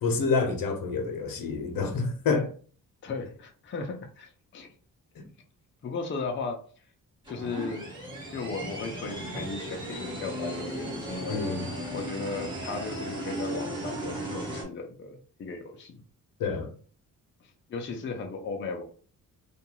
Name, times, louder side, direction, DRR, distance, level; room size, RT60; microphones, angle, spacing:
voice 1, 0.0-2.5 5.2-5.3 11.3-11.7 16.4-16.7, left 4 dB, 75° left, 0.7 m, -28 dB
voice 2, 3.0-4.7 5.8-6.6 7.3-7.9 8.3-11.4 11.9-15.9 17.4-18.8, left 4 dB, 35° left, 0.5 m, -36 dB
sound 1, 7.2-14.6, right 1 dB, 15° right, 1.0 m, -36 dB
2.5 x 2.2 x 2.9 m
cardioid pair, 125°, 34 cm